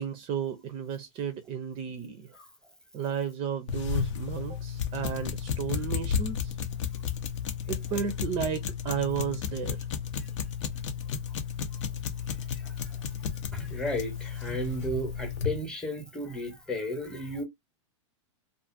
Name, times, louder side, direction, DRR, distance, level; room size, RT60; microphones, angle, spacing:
voice 1, 0.0-2.3 2.9-6.5 7.7-9.8, right 7 dB, 35° right, 0.5 m, -33 dB
sound 1, 3.7-15.6, left 7 dB, 70° left, 0.7 m, -33 dB
voice 2, 13.5-17.4, equal, 5° left, 0.9 m, -34 dB
2.5 x 2.4 x 2.5 m
hypercardioid pair, 125°, 16 cm